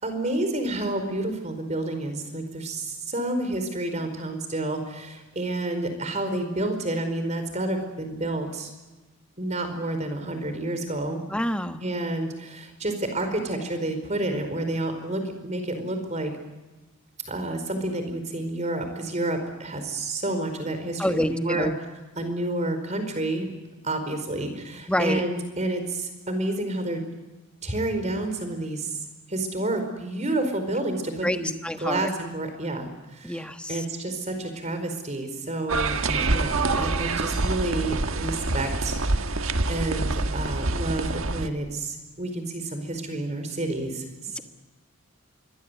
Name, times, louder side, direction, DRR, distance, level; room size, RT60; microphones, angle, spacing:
voice 1, 0.0-8.7 9.4-11.2 11.8-16.3 17.3-21.7 22.2-23.5 23.8-27.0 27.6-29.0 29.3-39.4 39.7-44.4, right 2 dB, 35° right, 7 dB, 4.7 m, -29 dB
voice 2, 11.3-11.8 21.0-21.8 24.9-25.2 31.2-32.1 33.2-33.8, equal, 5° left, 8 dB, 1.1 m, -27 dB
sound 1, 35.7-41.5, right 3 dB, 75° right, 1.4 m, -26 dB
26.0 x 22.5 x 8.2 m, 1.2 s
head